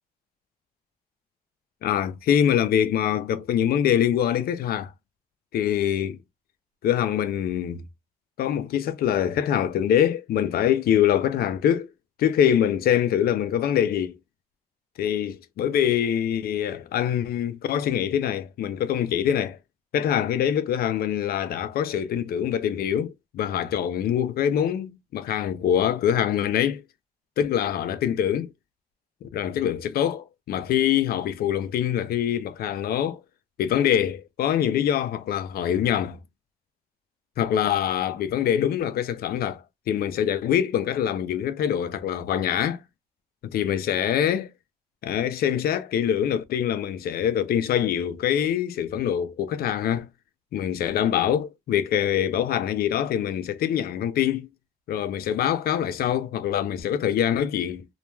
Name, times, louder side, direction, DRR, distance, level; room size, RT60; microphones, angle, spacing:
voice 1, 1.8-4.9 5.5-6.2 6.8-7.9 8.4-11.9 12.2-14.2 15.0-19.6 19.9-26.8 27.4-28.5 29.2-33.2 33.6-36.2 37.4-42.8 43.4-44.5 45.0-50.1 50.5-54.5 54.9-57.9, left 10 dB, 85° left, 0.4 m, -24 dB
2.2 x 2.1 x 3.0 m
cardioid pair, 85°, 15 cm